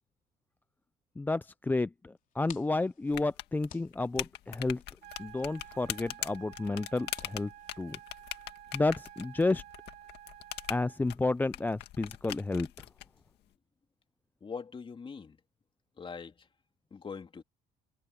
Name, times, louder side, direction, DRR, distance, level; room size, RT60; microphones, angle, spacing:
voice 1, 1.2-4.8 5.2-7.5 7.8-8.0 8.7-9.6 10.7-12.7, left 3 dB, 10° left, 0.4 m, -31 dB
sound 1, 2.2-8.5, left 9 dB, 50° left, 3.5 m, -57 dB
sound 2, 3.1-13.1, left 14 dB, 80° left, 2.0 m, -41 dB
sound 3, 5.0-11.0, right 14 dB, 80° right, 1.3 m, -51 dB
voice 2, 14.4-15.4 16.0-16.3 16.9-17.4, left 5 dB, 30° left, 3.3 m, -42 dB
cardioid pair, 110°, 17 cm